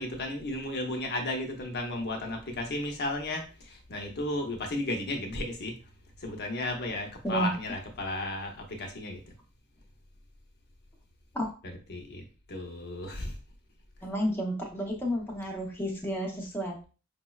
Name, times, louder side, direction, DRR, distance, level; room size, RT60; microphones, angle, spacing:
voice 1, 0.0-5.7 6.2-9.2 11.6-13.3, left 1 dB, 50° left, 3 dB, 0.7 m, -34 dB
voice 2, 14.0-16.9, equal, 10° left, -1 dB, 0.7 m, -31 dB
5.3 x 2.1 x 2.3 m, 0.35 s
head